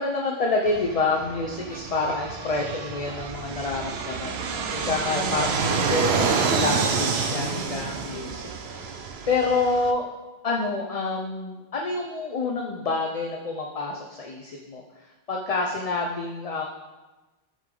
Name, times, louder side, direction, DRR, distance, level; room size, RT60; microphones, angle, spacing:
voice 1, 0.0-8.9 9.3-10.1 10.4-14.8 15.3-16.6, left 3 dB, 40° left, 0 dB, 0.7 m, -28 dB
Fixed-wing aircraft airplane, 0.7-9.9, right 5 dB, 80° right, 1.0 m, -28 dB
14.0 x 4.9 x 3.8 m, 1.2 s
omnidirectional pair, 1.1 m